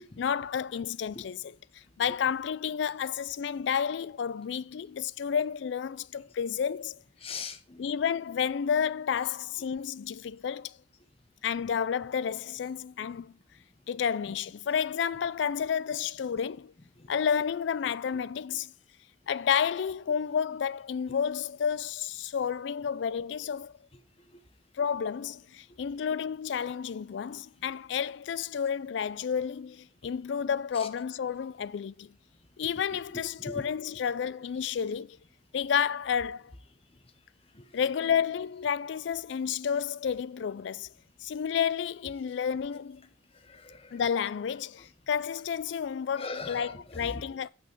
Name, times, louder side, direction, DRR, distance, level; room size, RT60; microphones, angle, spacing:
voice 1, 0.2-1.6 2.0-7.0 7.8-10.7 11.4-13.3 13.9-16.7 17.1-18.7 19.3-23.7 24.8-32.1 32.6-35.2 35.5-36.5 37.7-40.9 41.2-43.1 43.9-47.5, left 7 dB, 70° left, 0.4 m, -31 dB
voice 2, 7.2-7.8 33.4-33.6 37.5-37.6 43.5-44.0 46.2-47.2, left 3 dB, 30° left, 1.0 m, -40 dB
8.5 x 5.7 x 4.5 m
head